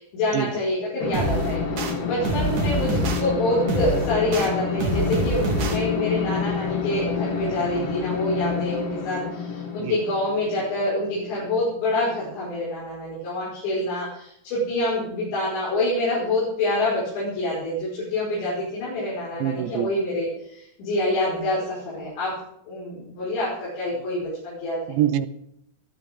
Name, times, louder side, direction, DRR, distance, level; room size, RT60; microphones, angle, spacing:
voice 1, 0.0-22.3 22.7-25.0, left 1 dB, 75° left, 7.6 m, -26 dB
sound 1, 1.0-12.1, left 5 dB, 55° left, 1.7 m, -29 dB
sound 2, 1.1-1.9 2.2-3.2 3.7-4.5 4.8-5.8, right 3 dB, 50° right, 2.7 m, -26 dB
voice 2, 19.4-19.9 24.9-25.3, right 12 dB, 80° right, 3.0 m, -24 dB
21.0 x 14.5 x 3.8 m
omnidirectional pair, 5.2 m